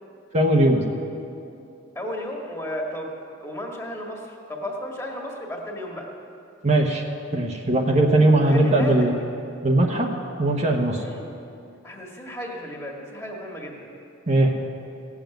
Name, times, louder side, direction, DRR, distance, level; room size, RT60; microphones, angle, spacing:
voice 1, 0.3-0.8 6.6-7.0 7.3-9.1 9.6-10.1 10.4-11.0 14.3-14.6, right 1 dB, 35° right, 1 dB, 1.0 m, -19 dB
voice 2, 2.0-3.1 3.4-6.1 8.3-9.1 11.0-11.3 11.8-13.9, equal, 15° left, -1 dB, 1.8 m, -33 dB
17.0 x 7.3 x 9.1 m, 2.7 s
head